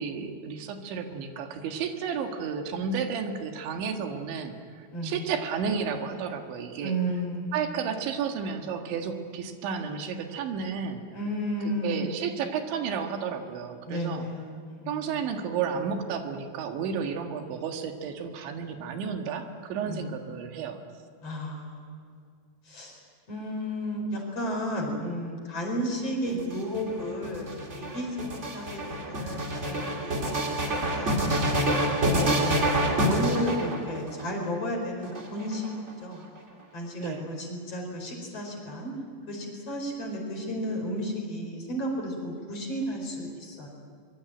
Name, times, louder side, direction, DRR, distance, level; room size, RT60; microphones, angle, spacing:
voice 1, 0.0-7.0 7.5-11.0 11.7-14.3 14.9-20.8 37.0-37.3, right 6 dB, 80° right, 5 dB, 4.1 m, -32 dB
voice 2, 6.8-7.7 11.1-12.2 13.9-15.1 19.8-20.0 21.2-22.1 22.7-23.0 23.3-27.5 27.7-31.2 32.0-35.7 36.0-36.2 36.7-38.9 39.3-43.7, equal, 35° left, 1 dB, 5.5 m, -33 dB
sound 1, 26.3-34.2 35.0-35.9, right 1 dB, 20° right, 2.0 m, -27 dB
24.5 x 23.0 x 9.1 m, 2.2 s
omnidirectional pair, 5.2 m